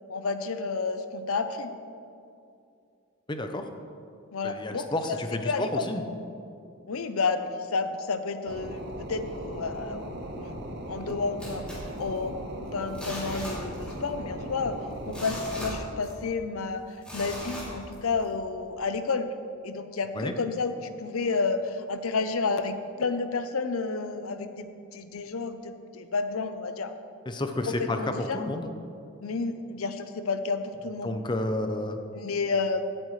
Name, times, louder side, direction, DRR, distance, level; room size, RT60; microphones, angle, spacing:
voice 1, 0.1-1.7 4.3-5.9 6.9-10.6 10.9-11.6 12.0-12.3 12.7-14.8 15.0-16.8 17.1-19.3 19.6-20.7 21.0-24.7 24.9-26.9 27.7-28.5 29.2-31.2 32.1-32.8, left 4 dB, 85° left, 9 dB, 0.7 m, -30 dB
voice 2, 3.3-3.7 4.4-6.0 20.1-20.3 27.3-28.7 31.0-32.0, left 1 dB, 20° left, 6 dB, 0.7 m, -30 dB
sound 1, 8.5-15.8, right 1 dB, 50° right, 1.0 m, -38 dB
sound 2, 11.4-12.5 12.9-14.1 14.4-14.5 14.9-16.4 17.0-18.2 18.7-18.8, equal, 5° left, 2.9 m, -39 dB
16.5 x 8.8 x 3.2 m, 2.5 s
head